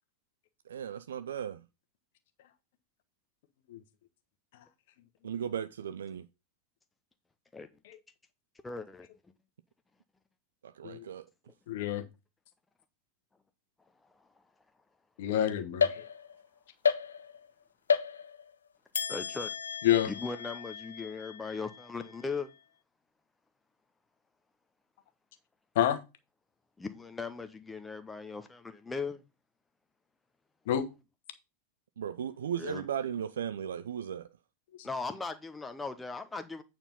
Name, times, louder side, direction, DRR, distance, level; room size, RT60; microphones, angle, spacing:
voice 1, 0.7-1.6 5.2-6.3 10.6-11.3 32.0-34.3, right 8 dB, 65° right, 0.4 m, -36 dB
voice 2, 8.6-9.1 19.1-19.5 20.0-22.5 26.8-29.2 32.6-32.9 34.8-36.6, left 4 dB, 10° left, 0.8 m, -38 dB
voice 3, 11.7-12.0 15.2-16.0 19.8-20.1 25.7-26.0 30.7-30.9 34.8-34.9, left 11 dB, 55° left, 1.2 m, -28 dB
sound 1, 15.8-16.5 16.8-17.5 17.9-18.6 18.9-22.4, left 6 dB, 70° left, 0.6 m, -33 dB
8.9 x 4.4 x 5.4 m
figure-of-eight pair, 90°, 0 cm